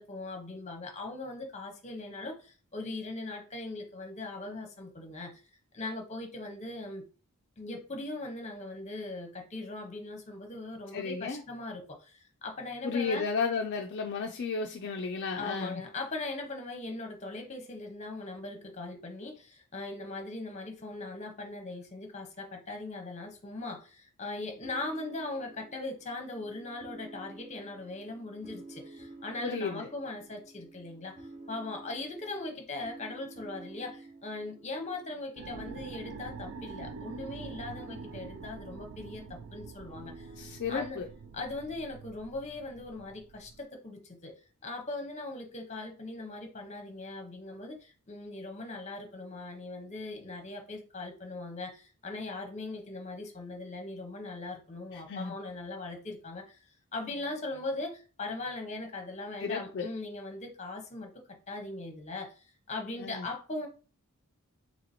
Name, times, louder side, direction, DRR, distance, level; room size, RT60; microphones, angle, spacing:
voice 1, 0.0-5.4 5.7-7.0 7.6-13.2 15.4-40.3 40.7-41.0 41.3-44.3 44.6-56.6 56.9-63.7, left 2 dB, 30° left, 0.8 m, -40 dB
voice 2, 10.9-11.4 12.8-15.8 29.4-29.9 40.4-41.1 54.9-55.3 59.4-59.9 63.0-63.3, left 5 dB, 50° left, 0.4 m, -33 dB
sound 1, 24.6-42.1, right 2 dB, 25° right, 1.1 m, -51 dB
sound 2, 35.4-43.6, right 5 dB, 60° right, 0.3 m, -46 dB
2.9 x 2.8 x 4.1 m
head